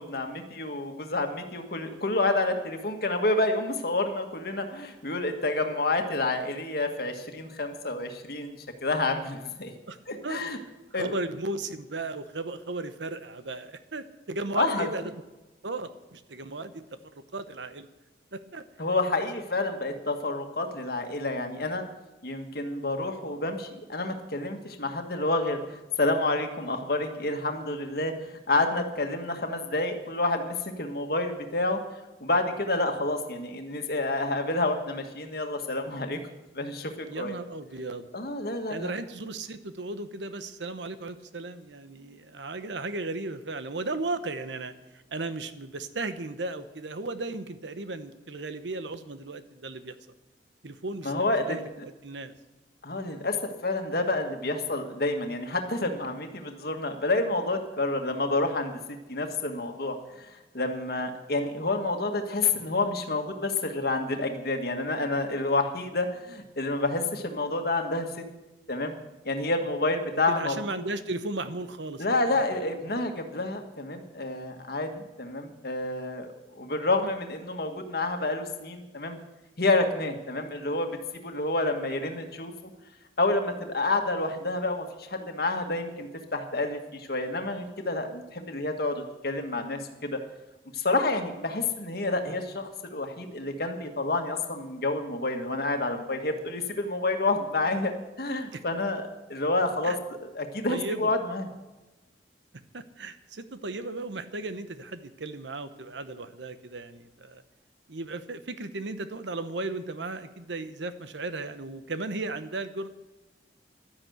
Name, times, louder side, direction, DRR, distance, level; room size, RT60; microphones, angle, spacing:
voice 1, 0.0-9.7 10.1-10.6 10.9-11.1 14.5-14.9 18.8-21.8 22.2-31.8 32.2-36.2 36.5-37.3 38.1-38.9 51.0-51.6 52.8-53.4 53.6-68.2 68.7-68.9 69.2-70.6 72.0-76.3 76.5-79.2 79.6-82.5 83.2-90.2 90.7-100.0 100.2-101.5, left 2 dB, 60° left, 5 dB, 1.7 m, -29 dB
voice 2, 11.0-15.1 15.6-16.8 17.3-17.9 18.3-18.6 37.1-38.1 38.7-44.7 45.1-49.9 50.6-51.1 51.5-52.3 61.1-61.2 70.3-72.6 98.5-98.6 99.8-100.0 100.7-101.1 102.7-107.4 107.9-112.9, right 2 dB, 90° right, 11 dB, 1.0 m, -35 dB
12.0 x 10.5 x 8.0 m, 1.1 s
head